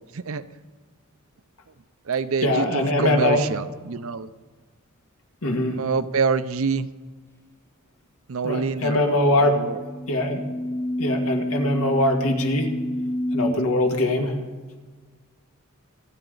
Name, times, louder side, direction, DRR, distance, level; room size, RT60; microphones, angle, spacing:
voice 1, 0.1-0.4 2.1-4.3 5.7-6.9 8.3-9.8, right 5 dB, 70° right, 13 dB, 0.6 m, -26 dB
voice 2, 2.4-3.4 5.4-5.8 8.4-9.6 10.1-10.4 11.0-12.7 13.3-14.4, left 1 dB, 85° left, 2 dB, 2.0 m, -22 dB
sound 1, 9.2-13.5, left 1 dB, 10° left, 0.6 m, -29 dB
27.0 x 9.1 x 3.9 m, 1.4 s
head